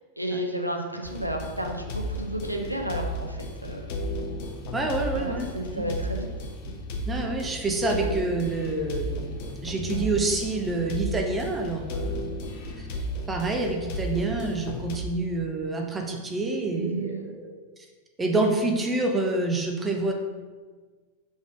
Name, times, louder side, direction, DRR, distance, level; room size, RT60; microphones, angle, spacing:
voice 1, 0.2-3.9 5.1-6.3 16.7-17.3, right 1 dB, 90° right, 2 dB, 0.6 m, -32 dB
sound 1, 1.0-15.0, equal, 45° left, 0.7 m, -34 dB
voice 2, 4.7-5.9 7.1-12.4 12.8-13.0 13.3-17.6 18.2-20.1, right 2 dB, 15° right, 2 dB, 0.9 m, -27 dB
5.2 x 3.8 x 5.0 m, 1.4 s
figure-of-eight pair, 90°, 0 cm